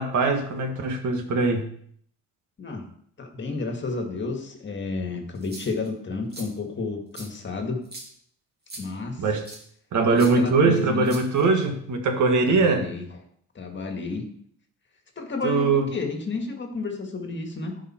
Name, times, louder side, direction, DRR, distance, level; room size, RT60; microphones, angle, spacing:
voice 1, 0.0-1.7 9.2-9.4 9.9-12.8 15.4-15.9, right 3 dB, 65° right, 5 dB, 1.7 m, -21 dB
voice 2, 3.2-7.8 8.8-9.3 10.2-11.2 12.5-13.2 13.6-14.3 15.2-17.8, left 3 dB, 35° left, 4 dB, 1.9 m, -31 dB
sound 1, 5.3-5.9 6.3-6.5 7.1-7.3 7.8-8.1 8.7-8.8 9.4-9.6 10.2-10.3 11.0-11.6, right 2 dB, 30° right, 2.6 m, -41 dB
15.5 x 5.2 x 4.4 m, 0.64 s
cardioid pair, 130°, 32 cm